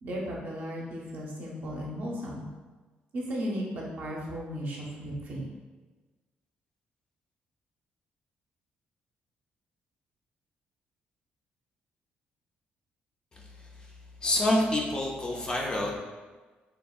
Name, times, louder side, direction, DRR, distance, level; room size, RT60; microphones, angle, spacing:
voice 1, 0.0-2.5 3.1-5.5, equal, 55° right, -3 dB, 0.6 m, -35 dB
voice 2, 14.2-16.0, left 1 dB, 25° left, -2 dB, 0.4 m, -27 dB
3.4 x 2.1 x 2.3 m, 1.3 s
cardioid pair, 155°, 4 cm